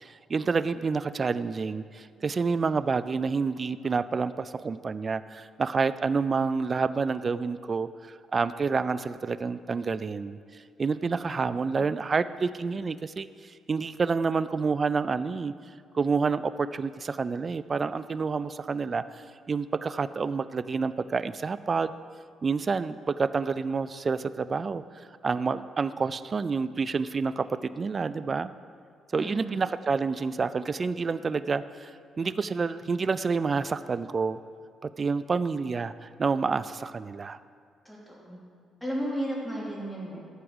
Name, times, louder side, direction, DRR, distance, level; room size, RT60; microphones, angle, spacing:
voice 1, 0.0-7.9 8.3-10.4 10.8-13.3 13.7-15.5 15.9-19.2 19.5-21.9 22.4-24.8 25.2-28.5 29.1-31.9 32.2-34.4 34.8-37.4, right 4 dB, 35° right, 14 dB, 0.3 m, -28 dB
voice 2, 29.1-29.6 37.8-38.4 38.8-40.2, equal, 5° left, -5 dB, 3.0 m, -34 dB
11.0 x 4.7 x 7.9 m, 2.1 s
cardioid pair, 90°, 0 cm